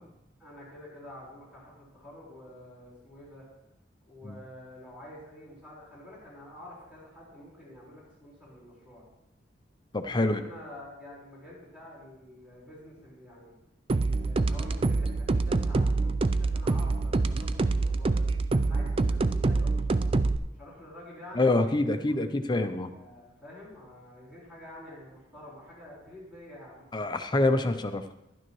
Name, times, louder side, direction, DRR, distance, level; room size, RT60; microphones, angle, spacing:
voice 1, 0.4-3.4 4.1-9.0 10.2-13.5 14.0-18.2 18.5-20.2 20.5-22.2 22.9-27.1, left 1 dB, 5° right, -8 dB, 4.5 m, -48 dB
voice 2, 9.9-10.4 21.3-22.9 26.9-28.3, left 2 dB, 25° left, 8 dB, 0.6 m, -26 dB
sound 1, 13.9-20.4, right 3 dB, 30° right, 0.3 m, -26 dB
12.0 x 11.0 x 3.1 m, 0.88 s
head